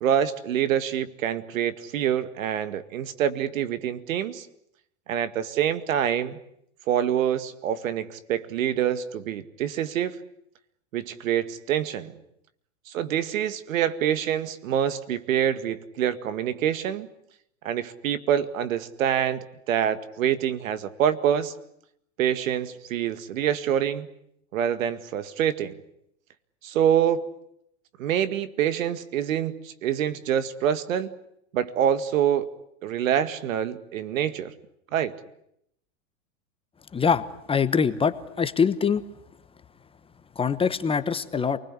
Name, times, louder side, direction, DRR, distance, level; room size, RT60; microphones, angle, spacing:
voice 1, 0.0-4.5 5.1-6.4 6.9-10.2 10.9-12.1 12.9-17.1 17.6-21.5 22.2-24.1 24.5-25.8 26.6-27.2 28.0-31.1 31.5-32.5 32.8-34.5 34.9-35.1, right 9 dB, 80° right, 13 dB, 2.1 m, -26 dB
voice 2, 36.9-37.2 37.5-39.0 40.4-41.6, left 6 dB, 15° left, 11 dB, 1.0 m, -23 dB
28.5 x 20.0 x 9.8 m, 0.76 s
supercardioid pair, 130°, 39 cm